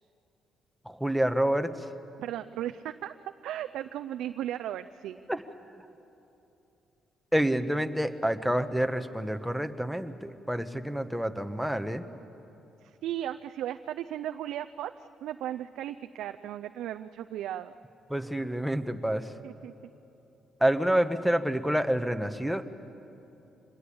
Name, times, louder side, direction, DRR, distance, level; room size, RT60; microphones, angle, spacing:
voice 1, 0.8-1.7 5.3-5.4 7.3-12.1 18.1-19.3 20.6-22.6, right 1 dB, ahead, 8 dB, 1.2 m, -28 dB
voice 2, 2.2-3.2 3.4-5.2 12.8-17.8 19.4-19.7, right 12 dB, 85° right, 8 dB, 0.5 m, -36 dB
24.5 x 20.0 x 8.6 m, 2.9 s
cardioid pair, 90°, 0 cm